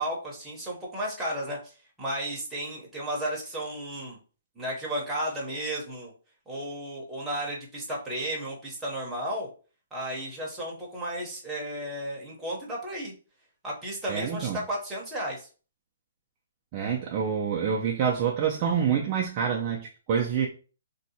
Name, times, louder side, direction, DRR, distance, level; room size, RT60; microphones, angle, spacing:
voice 1, 0.0-1.7 2.0-4.2 4.6-6.1 6.5-9.5 9.9-13.1 13.6-15.5, right 1 dB, 5° right, 0.7 m, -33 dB
voice 2, 14.1-14.6 16.7-20.5, right 7 dB, 20° right, 0.3 m, -27 dB
2.6 x 2.1 x 4.0 m
hypercardioid pair, 175°, 0 cm